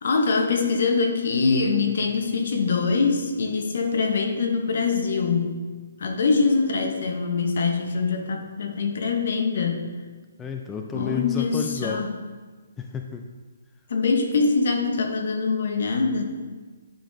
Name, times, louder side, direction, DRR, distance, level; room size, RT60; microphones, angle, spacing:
voice 1, 0.0-5.6 6.0-9.9 10.9-12.2 13.9-16.2, left 4 dB, 60° left, 5 dB, 0.8 m, -23 dB
voice 2, 10.4-12.1 12.8-13.2, left 5 dB, 15° left, 3 dB, 0.3 m, -31 dB
10.0 x 3.8 x 2.6 m, 1.4 s
figure-of-eight pair, 140°, 0 cm